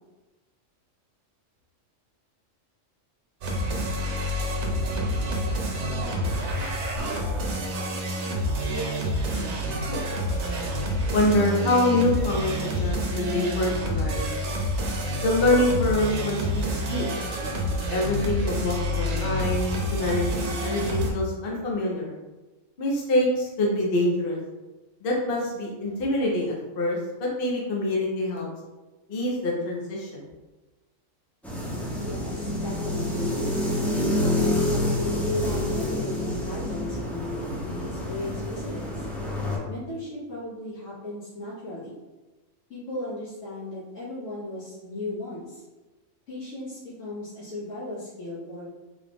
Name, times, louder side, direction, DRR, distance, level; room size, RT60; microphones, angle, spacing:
sound 1, 3.4-21.1, equal, 65° right, 0.9 m, -28 dB
voice 1, 11.1-14.3 15.2-17.0 17.9-22.1 22.8-24.4 25.0-28.5 29.1-30.2, left 1 dB, 50° left, -2 dB, 0.9 m, -25 dB
sound 2, 31.4-39.6, left 1 dB, ahead, 0.3 m, -28 dB
voice 2, 31.9-33.4 33.9-39.0 39.7-42.0 42.7-45.6 46.3-48.7, left 1 dB, 75° left, -10 dB, 1.7 m, -36 dB
3.7 x 2.4 x 3.4 m, 1.1 s
omnidirectional pair, 1.3 m